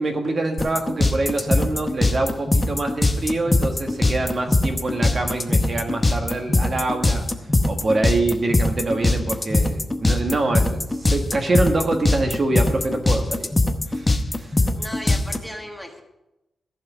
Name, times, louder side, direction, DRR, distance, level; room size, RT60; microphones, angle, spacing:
voice 1, 0.0-7.3 7.7-13.5 13.9-14.6, right 2 dB, 35° right, 4 dB, 1.4 m, -25 dB
sound 1, 0.6-15.4, left 2 dB, 15° left, 0.8 m, -20 dB
voice 2, 14.8-16.0, equal, ahead, 3 dB, 1.4 m, -35 dB
14.5 x 5.8 x 8.2 m, 0.92 s
wide cardioid pair, 155°, 0 cm